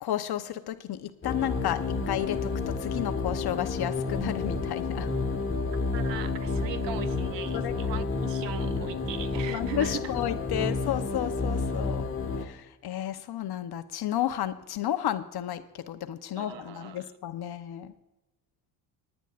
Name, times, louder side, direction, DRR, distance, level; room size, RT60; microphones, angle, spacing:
voice 1, 0.0-5.1 7.5-7.8 9.5-12.1 12.4-17.9, left 11 dB, 50° left, 1.0 m, -32 dB
sound 1, 1.2-12.5, left 3 dB, 25° left, 1.6 m, -30 dB
voice 2, 5.9-10.1 16.4-17.1, right 10 dB, 60° right, 0.8 m, -40 dB
19.5 x 10.0 x 2.5 m
supercardioid pair, 80°, 48 cm